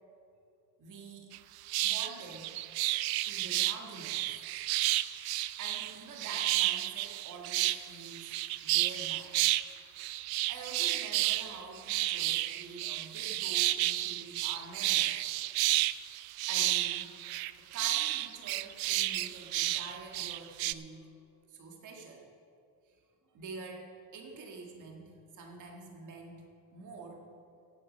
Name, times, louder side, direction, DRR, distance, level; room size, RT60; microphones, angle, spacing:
voice 1, 0.8-1.3 1.8-2.6 3.3-4.5 5.6-9.4 10.4-15.3 16.5-17.1 17.7-21.2 21.5-22.3 22.8-23.0 23.3-26.4 26.7-27.2, right 3 dB, 50° right, 1 dB, 1.8 m, -47 dB
sound 1, 1.3-1.4 1.7-9.7 10.0-20.7, right 16 dB, 70° right, 0.5 m, -31 dB
16.0 x 8.5 x 5.3 m, 2.5 s
cardioid pair, 160°, 39 cm